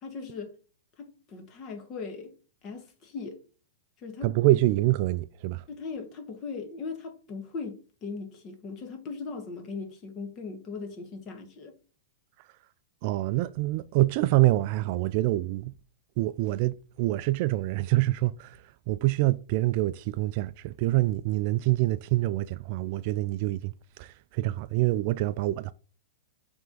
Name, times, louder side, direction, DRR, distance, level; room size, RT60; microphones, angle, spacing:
voice 1, 0.0-0.6 1.0-2.3 2.6-3.4 4.0-4.3 5.7-11.7, left 4 dB, 35° left, 1.7 m, -39 dB
voice 2, 4.2-5.6 13.0-15.7 16.2-25.7, right 17 dB, 50° right, 0.3 m, -26 dB
5.9 x 3.5 x 5.4 m
hypercardioid pair, 115°, 0 cm